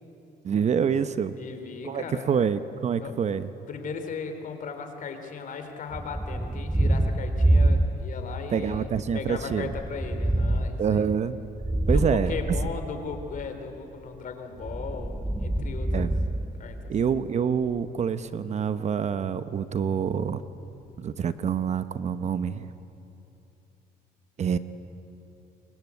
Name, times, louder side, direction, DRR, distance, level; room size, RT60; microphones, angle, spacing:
voice 1, 0.4-1.3 1.8-3.5 8.5-9.7 10.8-11.4 11.9-12.3 15.9-16.1 16.9-20.4 21.0-22.7 24.4-24.6, right 7 dB, 45° right, 12 dB, 1.0 m, -26 dB
voice 2, 1.4-2.3 3.0-3.2 3.7-11.1 11.9-16.1 16.6-16.9, left 5 dB, 50° left, 6 dB, 3.6 m, -37 dB
Thunder, 5.9-8.3 8.7-13.5 14.5-17.2, right 1 dB, 5° right, 0.9 m, -27 dB
28.0 x 23.5 x 8.5 m, 2.8 s
cardioid pair, 110°, 17 cm